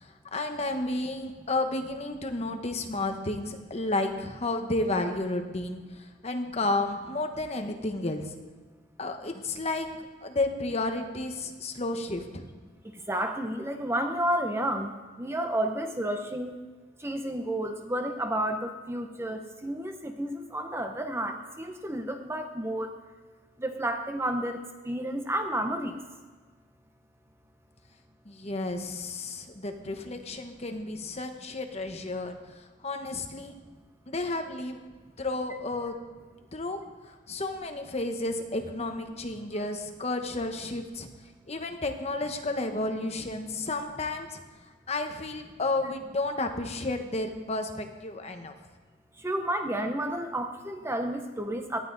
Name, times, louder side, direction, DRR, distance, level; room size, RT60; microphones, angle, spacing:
voice 1, 0.0-8.4 9.0-9.9 10.2-12.5 28.2-33.5 34.1-34.8 35.2-35.9 36.5-36.8 37.1-41.1 41.5-44.4 44.9-48.5, left 2 dB, 35° left, 5 dB, 1.1 m, -32 dB
voice 2, 12.8-16.6 17.0-22.9 23.6-26.0 49.2-51.8, right 1 dB, 15° right, 5 dB, 0.8 m, -31 dB
18.0 x 11.5 x 4.0 m, 1.4 s
head